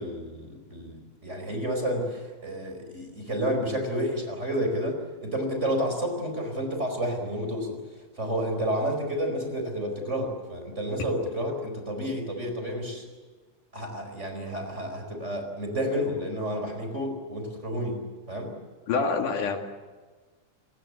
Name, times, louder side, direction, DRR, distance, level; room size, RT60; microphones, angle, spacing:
voice 1, 0.0-7.8 8.2-13.0 13.7-18.0 18.3-18.5, equal, 20° right, 4 dB, 4.7 m, -30 dB
voice 2, 18.9-19.6, left 4 dB, 85° left, 4 dB, 3.6 m, -26 dB
28.5 x 19.5 x 8.3 m, 1.4 s
omnidirectional pair, 3.6 m